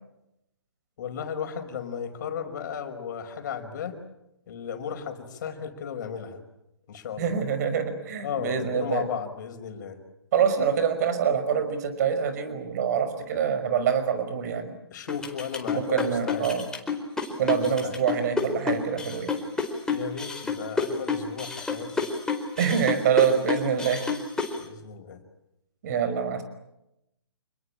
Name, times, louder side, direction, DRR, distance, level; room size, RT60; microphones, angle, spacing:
voice 1, 1.0-4.0 4.5-6.4 6.9-7.4 8.2-10.0 14.9-16.5 17.4-18.0 19.9-22.0 24.6-25.2, left 7 dB, 45° left, 8 dB, 5.3 m, -35 dB
voice 2, 7.2-9.0 10.3-14.7 15.7-16.6 17.4-19.3 22.6-24.0 25.8-26.4, right 7 dB, 40° right, 10 dB, 5.5 m, -25 dB
sound 1, 15.1-24.6, left 5 dB, 5° left, 4.5 m, -29 dB
29.5 x 21.0 x 8.9 m, 0.87 s
figure-of-eight pair, 135°, 13 cm